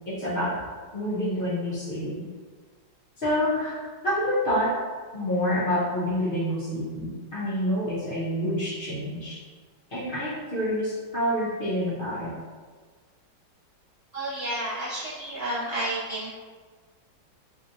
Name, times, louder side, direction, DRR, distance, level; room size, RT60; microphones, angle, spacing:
voice 1, 0.1-0.5 0.9-2.1 3.2-3.8 4.0-4.7 5.1-9.4 9.9-12.3, equal, 55° left, -9 dB, 0.5 m, -27 dB
voice 2, 14.1-16.3, right 1 dB, 30° right, -12 dB, 0.9 m, -31 dB
3.1 x 2.7 x 2.6 m, 1.5 s
omnidirectional pair, 1.9 m